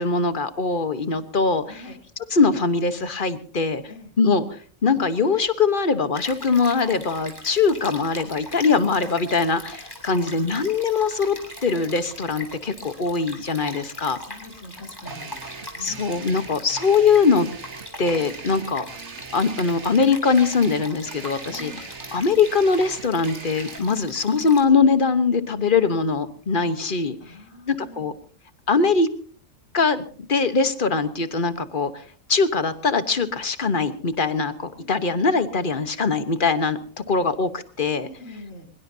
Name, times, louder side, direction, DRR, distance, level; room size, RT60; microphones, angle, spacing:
voice 1, 0.0-1.8 2.3-3.8 4.2-4.5 4.8-11.4 11.6-14.2 15.8-17.5 18.0-18.8 19.3-21.7 22.1-27.1 27.7-28.1 28.7-29.1 29.7-31.9 32.3-36.8 37.1-38.1, left 4 dB, 40° left, 11 dB, 1.3 m, -22 dB
voice 2, 1.7-2.0 3.9-4.1 10.2-11.1 14.2-15.3 15.7-16.3 21.5-21.8 27.2-28.1 34.7-35.1 38.0-38.7, left 1 dB, 65° left, 2 dB, 4.1 m, -43 dB
Stream, 6.1-24.6, left 1 dB, 15° left, 3.8 m, -40 dB
sound 1, 15.1-23.8, right 5 dB, 55° right, 1.5 m, -41 dB
23.5 x 21.5 x 2.8 m, 0.42 s
omnidirectional pair, 1.4 m